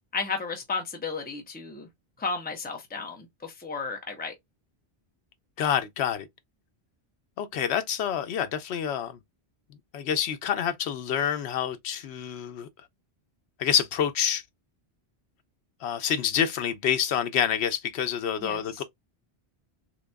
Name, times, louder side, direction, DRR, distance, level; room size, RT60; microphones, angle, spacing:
voice 1, 0.1-1.9 2.2-4.3 18.4-18.8, left 4 dB, 10° left, 0.8 m, -33 dB
voice 2, 5.6-6.3 7.4-9.2 9.9-12.7 13.6-14.4 15.8-18.8, left 8 dB, 90° left, 0.9 m, -27 dB
3.8 x 2.9 x 2.2 m
omnidirectional pair, 1.1 m